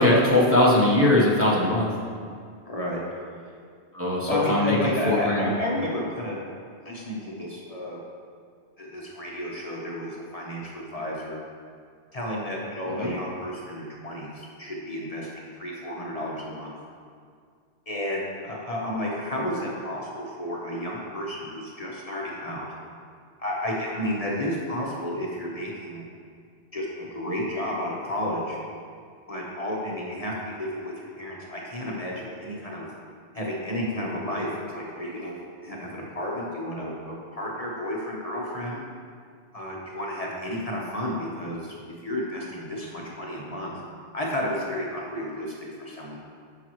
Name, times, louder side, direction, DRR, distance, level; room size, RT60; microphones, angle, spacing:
voice 1, 0.0-1.9 3.9-5.5 12.9-13.1, left 1 dB, 15° right, -5 dB, 1.0 m, -21 dB
voice 2, 2.7-3.0 4.3-6.4 6.8-8.0 8.8-11.4 12.1-16.7 17.9-22.7 23.4-26.0 26.7-28.6 29.3-32.9 33.3-34.5 34.7-35.4 35.6-38.8 39.5-41.7 42.0-43.8 44.1-46.2, left 1 dB, 35° left, -4 dB, 1.1 m, -32 dB
12.0 x 5.8 x 3.1 m, 2.2 s
omnidirectional pair, 1.2 m